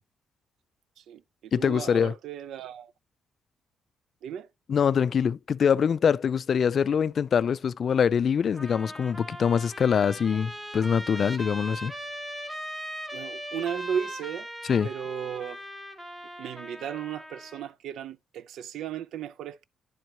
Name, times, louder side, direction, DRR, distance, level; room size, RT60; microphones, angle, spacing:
voice 1, 1.0-2.9 4.2-4.5 13.1-14.5 14.8-15.6 16.4-19.6, right 8 dB, 75° right, 0.4 m, -35 dB
voice 2, 1.5-2.1 4.7-11.9 14.7-14.9, left 7 dB, 50° left, 0.3 m, -24 dB
Trumpet, 8.5-17.7, equal, 10° right, 1.0 m, -39 dB
10.0 x 4.6 x 2.8 m
cardioid pair, 90°, 0 cm